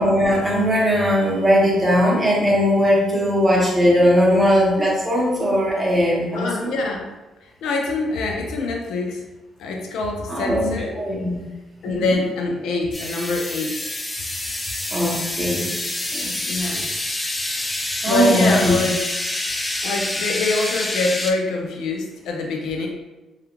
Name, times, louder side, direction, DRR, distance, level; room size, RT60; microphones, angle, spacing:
voice 1, 0.0-6.8 10.3-11.5 11.9-12.1 14.9-15.7 16.1-16.4 18.0-18.8, equal, 15° right, -4 dB, 0.8 m, -19 dB
voice 2, 6.3-7.1 7.4-9.2 9.6-10.9 11.8-13.9 16.5-16.9 18.1-19.0 19.8-22.9, left 3 dB, 90° left, 1 dB, 0.4 m, -24 dB
sound 1, 12.9-21.3, left 1 dB, 15° left, 0.3 m, -27 dB
2.4 x 2.1 x 2.9 m, 1.1 s
cardioid pair, 105°, 0 cm